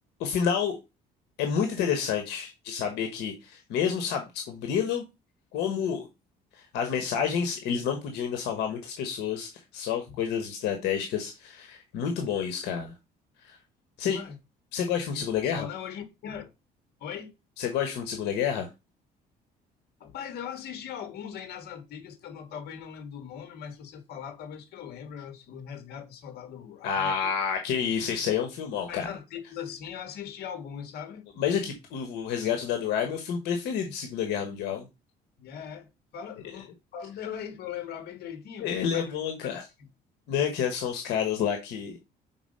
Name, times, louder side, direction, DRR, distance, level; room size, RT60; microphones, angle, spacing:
voice 1, 0.2-0.8 1.4-5.0 5.5-6.1 6.5-12.9 13.4-13.6 14.0-14.2 14.7-15.7 17.6-18.7 26.8-29.1 31.4-34.9 38.6-39.6 40.3-42.0, left 7 dB, 90° left, 1.3 m, -29 dB
voice 2, 14.1-14.4 15.1-16.5 17.0-17.3 20.0-27.2 28.9-31.3 35.4-39.1 39.4-39.9, left 8 dB, 70° left, 1.8 m, -40 dB
5.9 x 4.1 x 5.4 m
cardioid pair, 110°, 17 cm